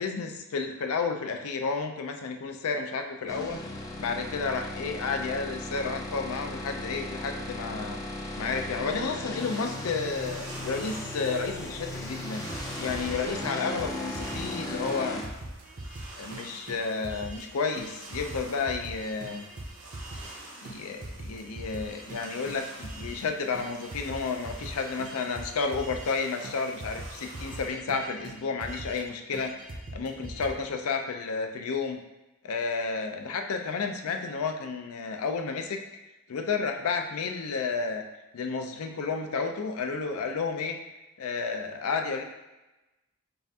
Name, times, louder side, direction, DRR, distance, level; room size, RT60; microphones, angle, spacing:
voice 1, 0.0-3.6 4.0-8.0 8.4-15.2 16.2-19.4 20.6-29.5 29.9-32.0 32.4-35.8 36.3-38.0 38.3-40.8 41.2-42.2, left 4 dB, 75° left, 5 dB, 0.5 m, -31 dB
sound 1, 3.3-15.2, left 1 dB, 15° left, 0.4 m, -37 dB
sound 2, 9.4-27.7, right 2 dB, 60° right, 1.0 m, -47 dB
sound 3, 12.5-14.6 14.9-15.0 15.2-17.5 17.8-20.4 20.6-23.3 23.5-26.2 26.4-26.5 26.8-29.1 29.3-30.5, right 1 dB, 40° right, 0.6 m, -41 dB
5.4 x 2.4 x 2.8 m, 1.0 s
head